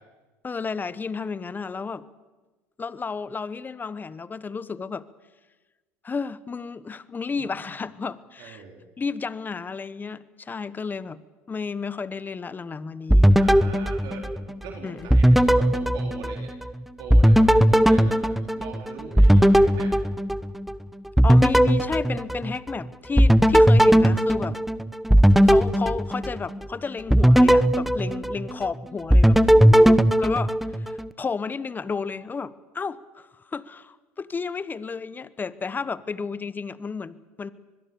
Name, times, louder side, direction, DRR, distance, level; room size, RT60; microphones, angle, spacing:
voice 1, 0.4-2.1 2.8-5.0 6.0-8.6 9.0-11.2 11.5-13.3 14.8-15.1 21.2-24.6 25.4-37.5, left 5 dB, 25° left, 17 dB, 1.1 m, -32 dB
voice 2, 8.4-8.8 13.3-16.5 17.0-19.9, right 5 dB, 60° right, 1 dB, 4.1 m, -41 dB
sound 1, 13.1-14.7 15.1-16.7 17.1-20.8 21.2-22.8 23.2-26.6 27.1-28.7 29.1-31.1, equal, ahead, 0.9 m, -18 dB
24.0 x 21.5 x 7.1 m, 1.2 s
hypercardioid pair, 85°, 8 cm